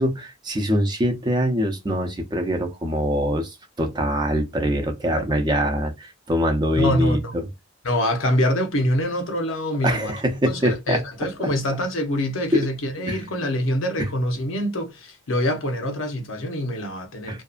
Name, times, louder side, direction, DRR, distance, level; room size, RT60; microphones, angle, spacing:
voice 1, 0.0-7.5 9.8-11.0 11.4-11.5 12.5-12.6 13.1-13.2 14.0-14.1 17.3-17.4, equal, 20° right, 0.6 m, -23 dB
voice 2, 6.7-7.4 7.8-10.1 10.5-17.4, equal, 85° left, 0.7 m, -25 dB
2.7 x 2.3 x 2.4 m
head